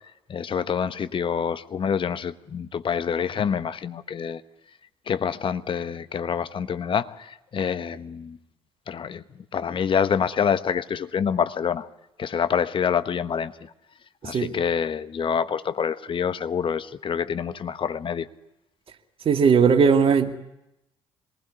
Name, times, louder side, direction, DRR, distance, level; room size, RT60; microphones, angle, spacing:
voice 1, 0.3-4.4 5.1-8.4 8.9-9.2 9.5-11.9 12.2-13.7 14.2-18.3, left 7 dB, 40° left, 1.3 m, -26 dB
voice 2, 19.3-20.4, right 6 dB, 45° right, 2.3 m, -18 dB
26.5 x 20.0 x 9.8 m
figure-of-eight pair, 50°, 13 cm